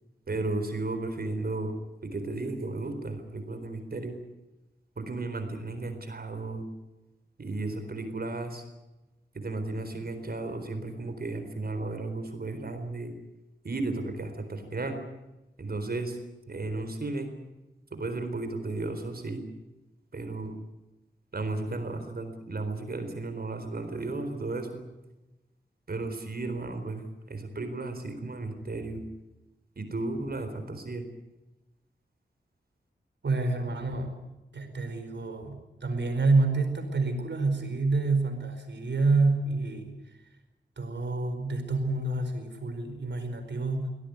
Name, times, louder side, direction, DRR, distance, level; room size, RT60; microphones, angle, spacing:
voice 1, 0.3-1.7 2.0-4.2 5.0-6.7 7.4-8.6 9.3-13.1 13.6-15.0 15.6-16.2 16.5-17.3 17.9-19.4 20.1-20.6 21.3-24.8 25.9-29.0 29.8-31.1, right 2 dB, 55° right, 7 dB, 4.2 m, -34 dB
voice 2, 33.2-34.2 34.5-39.9 40.8-43.9, right 3 dB, 75° right, 7 dB, 4.7 m, -28 dB
23.5 x 17.5 x 9.5 m, 1.0 s
wide cardioid pair, 90°, 19 cm